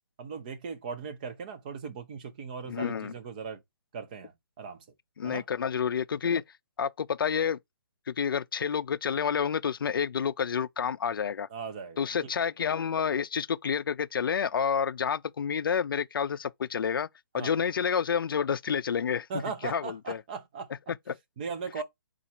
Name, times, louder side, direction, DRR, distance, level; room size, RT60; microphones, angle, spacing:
voice 1, 0.2-3.6 3.9-4.3 4.6-4.8 5.2-5.4 11.5-12.3 17.4-17.5 19.3-20.7 21.4-21.8, right 5 dB, 20° right, 0.5 m, -38 dB
voice 2, 2.7-3.1 5.2-6.4 6.8-7.6 8.1-11.5 12.0-17.1 17.3-19.3 19.6-20.2 20.9-21.2, left 7 dB, 70° left, 0.4 m, -29 dB
4.1 x 2.4 x 4.3 m
hypercardioid pair, 165°, 12 cm